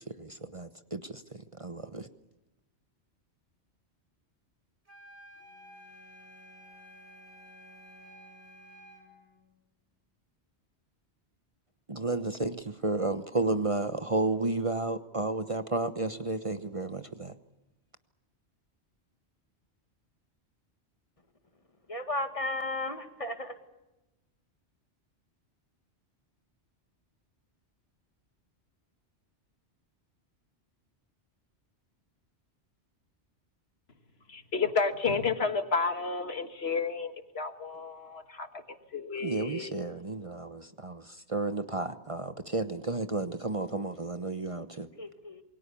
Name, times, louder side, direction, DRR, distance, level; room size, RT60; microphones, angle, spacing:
voice 1, 0.2-2.1 11.9-17.3 39.2-44.9, right 2 dB, 30° right, 1.1 m, -32 dB
sound 1, 4.9-9.1, equal, 75° right, 6.5 m, -53 dB
Bowed string instrument, 5.3-9.8, left 2 dB, 10° left, 3.7 m, -60 dB
voice 2, 21.9-23.6 45.0-45.4, left 2 dB, 30° left, 2.1 m, -34 dB
voice 3, 34.3-38.5 38.9-39.7, left 4 dB, 65° left, 1.8 m, -31 dB
28.5 x 22.0 x 7.0 m
omnidirectional pair, 1.1 m